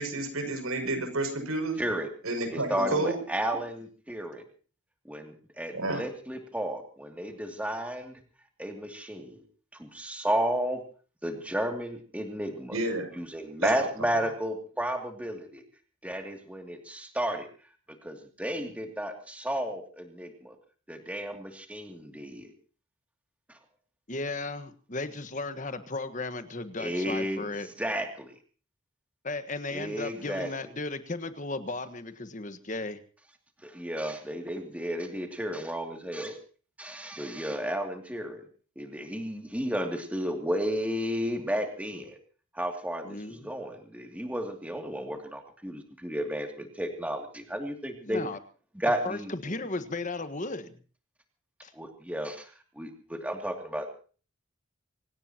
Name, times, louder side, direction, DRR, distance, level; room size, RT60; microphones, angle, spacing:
voice 1, 0.0-1.8 2.2-3.2 5.7-6.0 12.7-13.1 13.6-13.7, right 2 dB, 80° right, 6 dB, 6.5 m, -30 dB
voice 2, 1.8-2.1 2.5-4.4 5.0-8.1 8.6-9.4 9.7-10.8 11.2-12.8 13.2-15.6 16.0-17.5 18.0-20.6 20.9-22.5 23.5-23.6 26.8-28.3 29.7-30.5 33.6-36.4 36.8-38.4 38.8-42.2 42.5-48.3 48.8-49.3 51.7-52.5 52.8-53.9, equal, 5° right, 4 dB, 2.6 m, -33 dB
voice 3, 24.1-27.7 29.2-33.0 43.0-43.5 48.0-48.4 49.0-50.8 51.6-51.7, left 2 dB, 35° left, 11 dB, 1.4 m, -35 dB
25.5 x 17.5 x 2.9 m, 0.40 s
head